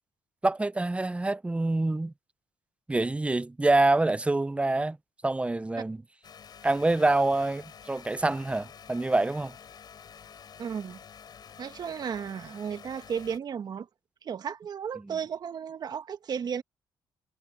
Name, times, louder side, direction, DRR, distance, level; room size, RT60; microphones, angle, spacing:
voice 1, 0.4-2.1 2.9-5.0 5.2-6.0 6.6-9.6, right 2 dB, 15° right, 0.7 m, -26 dB
sound 1, 6.2-13.4, left 7 dB, 55° left, 5.8 m, -49 dB
voice 2, 10.6-11.0 11.6-13.9 14.2-16.6, right 7 dB, 55° right, 1.5 m, -34 dB
cardioid pair, 80°, 8 cm